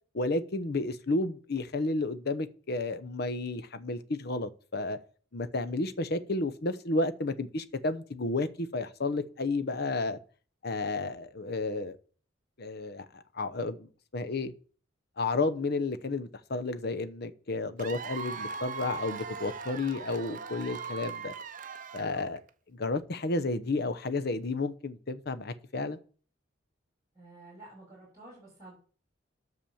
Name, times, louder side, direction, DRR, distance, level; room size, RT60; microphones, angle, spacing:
voice 1, 0.1-5.0 5.3-10.2 10.6-12.0 12.6-14.5 15.2-21.3 21.9-22.4 22.7-26.0, left 2 dB, 60° left, 0.8 m, -32 dB
Cheering / Applause / Crowd, 17.8-22.5, right 5 dB, 45° right, 0.7 m, -40 dB
voice 2, 27.1-28.7, right 2 dB, 15° right, 7.0 m, -50 dB
10.5 x 6.2 x 7.1 m
head